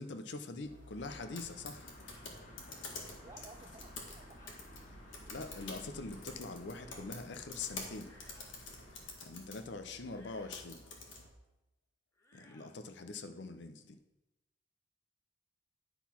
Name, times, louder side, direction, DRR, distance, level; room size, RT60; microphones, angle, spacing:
voice 1, 0.0-1.9 5.3-8.1 9.2-10.8 12.3-14.0, left 3 dB, 65° left, 8 dB, 0.6 m, -44 dB
sound 1, 0.6-11.3, left 3 dB, 85° left, 1.7 m, -49 dB
sound 2, 1.0-9.1, equal, 45° left, 1.5 m, -55 dB
sound 3, 2.0-2.3 3.3-3.6 4.4-4.6 5.5-5.8 6.8-7.1 7.9-8.6 10.0-10.7 12.1-12.8, left 1 dB, 15° left, 0.8 m, -64 dB
voice 2, 3.1-4.9, right 2 dB, 20° right, 7 dB, 0.6 m, -57 dB
10.5 x 4.0 x 5.8 m, 0.96 s
head